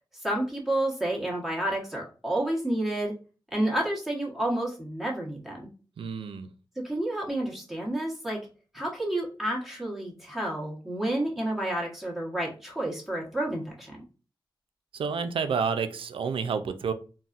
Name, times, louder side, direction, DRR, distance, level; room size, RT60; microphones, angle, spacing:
voice 1, 0.2-3.1 3.5-5.7 6.8-8.4 8.7-14.0, right 1 dB, 5° right, -3 dB, 1.1 m, -30 dB
voice 2, 6.0-6.5 14.9-16.9, right 6 dB, 85° right, 10 dB, 0.3 m, -29 dB
3.9 x 2.1 x 2.4 m, 0.35 s
wide cardioid pair, 120°, 9 cm